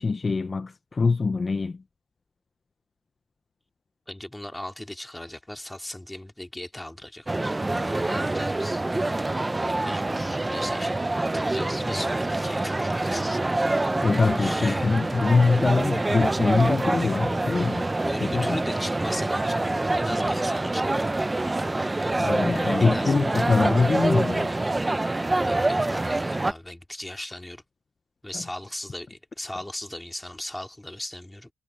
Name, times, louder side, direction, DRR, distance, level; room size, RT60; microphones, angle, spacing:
voice 1, 0.0-1.8 14.0-17.9 18.2-18.6 22.2-24.5 28.3-28.4, left 4 dB, 30° left, 0.8 m, -23 dB
voice 2, 4.1-8.8 9.6-13.4 14.4-14.9 15.2-15.3 18.0-21.0 22.8-23.2 25.5-27.6 28.2-31.5, left 1 dB, 5° left, 3.0 m, -37 dB
sound 1, 7.3-26.5, right 2 dB, 15° right, 0.8 m, -26 dB
cardioid pair, 90°, 0 cm